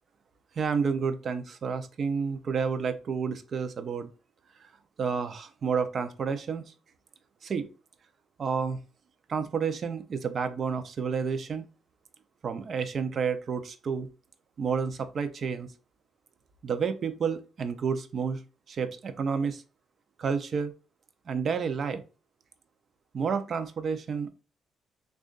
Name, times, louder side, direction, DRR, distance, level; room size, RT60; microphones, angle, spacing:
voice 1, 0.6-4.1 5.0-6.7 7.4-7.7 8.4-8.8 9.3-11.7 12.4-14.1 14.6-15.7 16.6-18.4 18.7-19.6 20.2-20.7 21.3-22.0 23.1-24.3, right 6 dB, 50° right, 0.6 m, -30 dB
6.3 x 2.5 x 2.5 m
cardioid pair, 90°, 0 cm